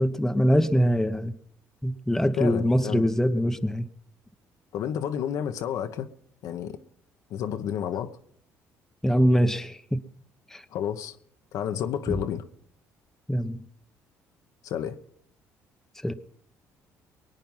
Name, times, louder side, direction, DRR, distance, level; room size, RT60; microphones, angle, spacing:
voice 1, 0.0-1.3 1.8-3.9 9.0-10.0 10.5-10.6 13.3-13.6 16.0-16.1, equal, 5° left, 1.0 m, -23 dB
voice 2, 2.3-3.1 4.7-6.1 6.4-6.8 7.3-8.1 10.7-11.2 11.5-12.4 14.6-15.0, left 9 dB, 70° left, 1.1 m, -30 dB
22.5 x 9.1 x 5.6 m
supercardioid pair, 75°, 6 cm